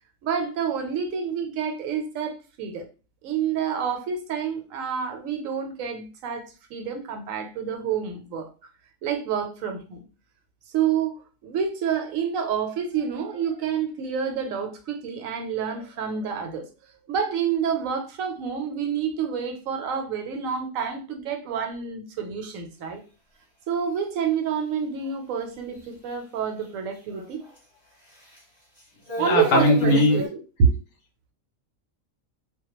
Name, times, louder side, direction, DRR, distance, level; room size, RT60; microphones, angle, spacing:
voice 1, 0.2-2.8 3.2-6.4 6.7-8.5 9.0-10.1 10.7-16.7 17.1-23.0 23.7-27.4 29.2-30.7, right 7 dB, 80° right, 1.0 m, -28 dB
sound 1, 25.8-25.9 26.6-26.7 27.0-27.6 28.1-28.4 28.8-30.3, right 1 dB, 20° left, 0.9 m, -35 dB
voice 2, 29.2-30.2, left 2 dB, 70° left, 0.8 m, -19 dB
2.2 x 2.1 x 2.9 m
omnidirectional pair, 1.4 m